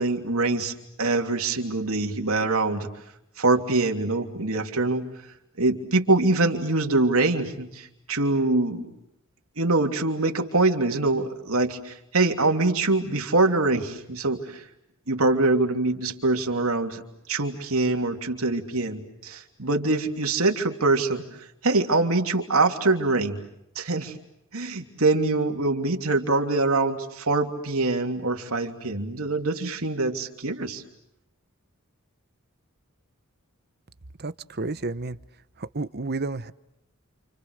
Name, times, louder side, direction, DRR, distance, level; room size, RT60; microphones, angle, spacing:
voice 1, 0.0-2.9 3.4-5.1 5.6-8.9 9.6-14.6 15.1-17.0 17.3-21.2 21.6-23.4 23.7-24.1 24.5-30.8, right 2 dB, 80° right, 3 dB, 3.1 m, -24 dB
voice 2, 34.2-35.2 35.6-36.5, right 3 dB, 50° right, 13 dB, 1.0 m, -31 dB
29.5 x 29.0 x 6.6 m, 0.82 s
head